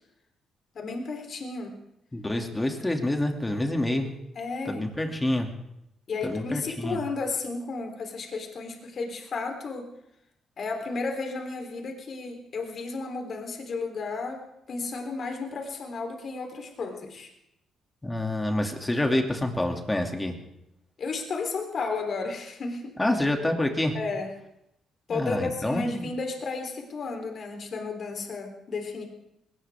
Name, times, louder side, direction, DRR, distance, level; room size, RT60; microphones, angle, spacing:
voice 1, 0.8-1.8 4.4-4.8 6.1-9.9 10.6-17.3 21.0-23.0 23.9-24.3 25.1-29.1, left 3 dB, 55° left, 4 dB, 3.6 m, -33 dB
voice 2, 2.1-4.1 4.6-5.5 6.2-7.0 18.0-20.3 23.0-23.9 25.1-26.1, left 1 dB, 15° left, 3 dB, 2.5 m, -27 dB
20.0 x 18.5 x 3.6 m, 0.81 s
cardioid pair, 90°, 0 cm